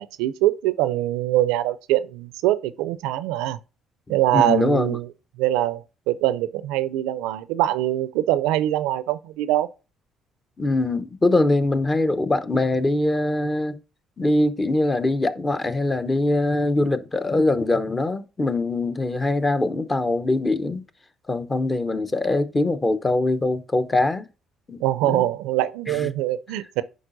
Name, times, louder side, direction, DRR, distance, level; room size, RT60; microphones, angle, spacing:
voice 1, 0.0-3.6 4.1-5.1 5.4-9.7 24.8-26.8, right 14 dB, 80° right, 0.4 m, -23 dB
voice 2, 4.3-5.0 10.6-13.8 14.2-20.8 21.3-24.3 24.7-25.2 25.9-26.1, left 2 dB, 25° left, 0.8 m, -22 dB
10.0 x 4.1 x 2.6 m
hypercardioid pair, 60°, 0 cm